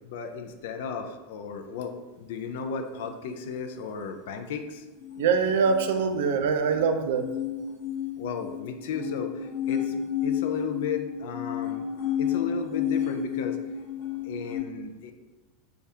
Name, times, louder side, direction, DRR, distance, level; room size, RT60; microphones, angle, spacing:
voice 1, 0.0-4.8 8.2-11.9 12.2-13.6 14.2-15.1, left 6 dB, 65° left, 7 dB, 0.3 m, -34 dB
sound 1, 4.9-14.6, left 9 dB, 90° left, 1.3 m, -31 dB
voice 2, 5.2-7.3, right 5 dB, 75° right, 7 dB, 0.3 m, -24 dB
3.3 x 2.3 x 2.7 m, 1.2 s
supercardioid pair, 170°, 0 cm